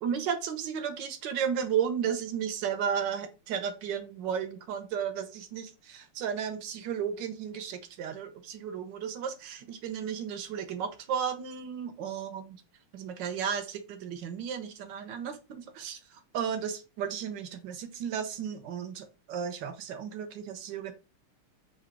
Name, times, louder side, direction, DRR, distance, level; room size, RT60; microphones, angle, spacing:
voice 1, 0.0-12.6 12.9-20.9, right 7 dB, 70° right, 8 dB, 1.2 m, -34 dB
4.0 x 2.7 x 4.4 m, 0.30 s
omnidirectional pair, 2.4 m